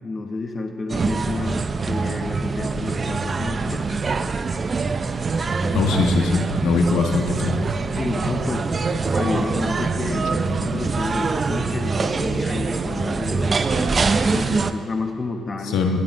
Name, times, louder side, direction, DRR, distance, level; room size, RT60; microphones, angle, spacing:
voice 1, 0.0-3.9 5.6-6.0 7.9-8.7 9.1-15.8, left 3 dB, 35° left, 4 dB, 1.1 m, -30 dB
sound 1, 0.9-14.7, right 4 dB, 35° right, 0.6 m, -24 dB
voice 2, 5.7-7.6 15.7-16.0, left 4 dB, 85° left, 3 dB, 1.5 m, -21 dB
19.0 x 11.5 x 3.7 m, 2.3 s
cardioid pair, 90°, 0 cm